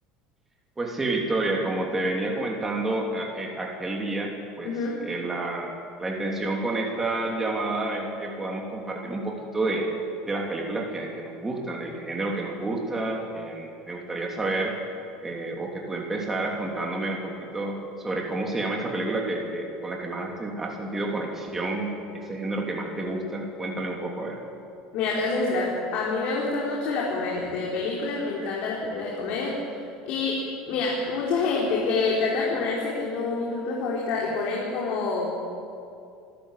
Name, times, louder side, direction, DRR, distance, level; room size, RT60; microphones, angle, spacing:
voice 1, 0.8-4.7 5.0-9.9 10.2-14.7 15.2-24.4, right 2 dB, 15° right, 0 dB, 3.1 m, -29 dB
voice 2, 4.6-5.0 24.9-29.5 30.1-35.4, left 3 dB, 60° left, -4 dB, 4.2 m, -27 dB
26.0 x 13.0 x 8.4 m, 2.5 s
supercardioid pair, 120°, 2 cm